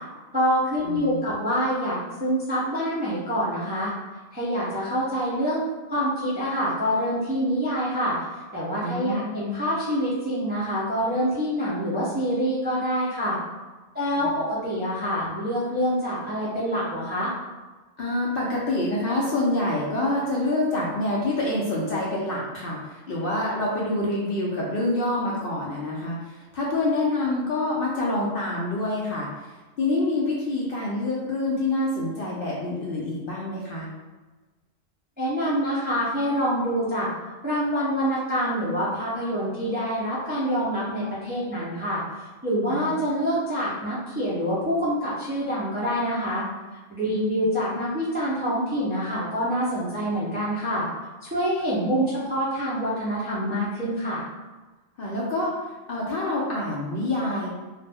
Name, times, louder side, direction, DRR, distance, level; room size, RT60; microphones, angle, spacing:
voice 1, 0.3-3.9 4.3-5.6 5.9-8.2 8.5-13.4 13.9-17.3 35.2-37.1 37.4-42.0 42.4-46.4 46.9-50.9 51.2-54.2, equal, 15° right, -8 dB, 0.3 m, -26 dB
voice 2, 0.8-1.3 8.8-9.2 14.2-14.3 18.0-29.3 29.8-33.9 42.7-43.0 47.0-47.4 55.0-55.6 55.9-57.5, left 2 dB, 60° left, -5 dB, 0.6 m, -27 dB
2.4 x 2.0 x 3.4 m, 1.2 s
omnidirectional pair, 1.3 m